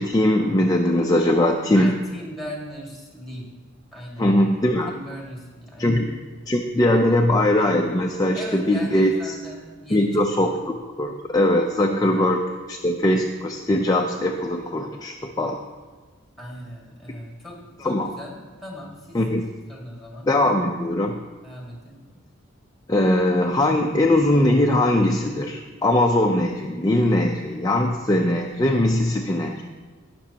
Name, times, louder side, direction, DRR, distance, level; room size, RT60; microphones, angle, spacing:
voice 1, 0.0-2.0 4.2-4.9 5.8-6.2 6.5-9.1 9.9-12.4 12.7-15.6 17.8-18.1 19.1-19.5 20.2-21.2 22.9-29.6, left 1 dB, 20° left, 1 dB, 0.5 m, -21 dB
voice 2, 1.7-3.6 3.9-4.3 4.9-6.0 8.3-10.2 12.1-12.3 16.4-19.2 19.7-20.3 21.4-22.0, equal, ahead, -2 dB, 1.8 m, -38 dB
18.0 x 6.1 x 2.8 m, 1.4 s
head